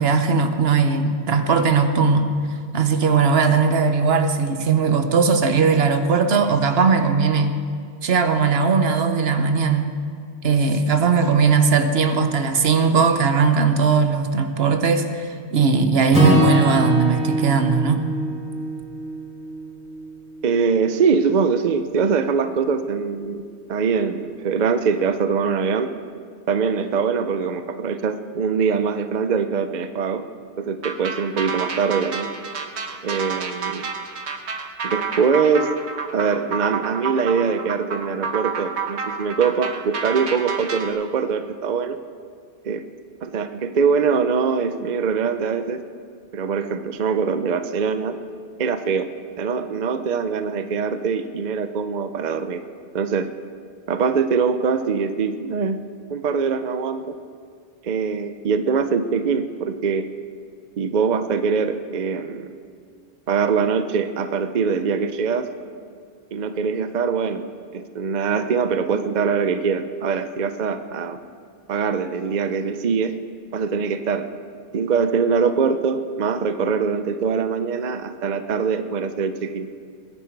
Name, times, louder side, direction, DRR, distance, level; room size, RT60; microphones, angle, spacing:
voice 1, 0.0-2.3 2.7-7.6 8.0-9.9 10.4-18.0, right 5 dB, 70° right, 8 dB, 1.1 m, -19 dB
Acoustic guitar / Strum, 16.1-20.4, equal, 5° right, 2.9 m, -23 dB
voice 2, 20.4-23.4 23.7-25.9 26.5-30.2 30.6-32.3 33.0-33.8 34.8-35.7 36.1-42.0 42.6-42.8 43.2-45.8 46.3-48.2 48.6-49.1 49.4-52.6 52.9-53.3 53.9-55.8 56.1-57.2 57.8-60.1 60.8-62.5 63.3-65.5 66.3-67.4 67.7-71.2 71.7-73.2 73.5-74.3 74.7-79.7, right 5 dB, 50° right, 9 dB, 0.7 m, -23 dB
sound 1, 30.8-40.9, right 5 dB, 85° right, 1.3 m, -29 dB
20.5 x 10.5 x 4.6 m, 2.2 s
omnidirectional pair, 1.1 m